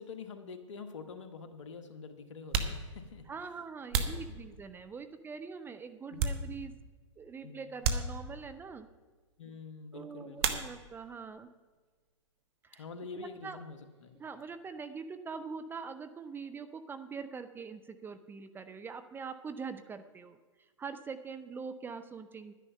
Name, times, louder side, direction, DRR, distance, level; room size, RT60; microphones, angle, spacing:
voice 1, 0.0-3.3 3.9-4.4 6.1-6.3 7.4-7.7 9.4-10.6 12.8-14.2, left 5 dB, 70° left, 8 dB, 1.4 m, -46 dB
sound 1, 0.6-0.7 1.6-1.8 2.3-5.0 5.5-6.9 7.2-7.3 7.8-8.6 10.4-11.2 11.4-12.1 12.4-14.5, right 5 dB, 50° right, 1.2 m, -36 dB
voice 2, 3.3-6.7 7.2-8.9 9.9-11.5 12.6-12.8 13.1-13.6 14.2-22.5, right 5 dB, 15° right, 10 dB, 0.5 m, -43 dB
11.0 x 10.0 x 5.5 m, 1.4 s
hypercardioid pair, 115°, 16 cm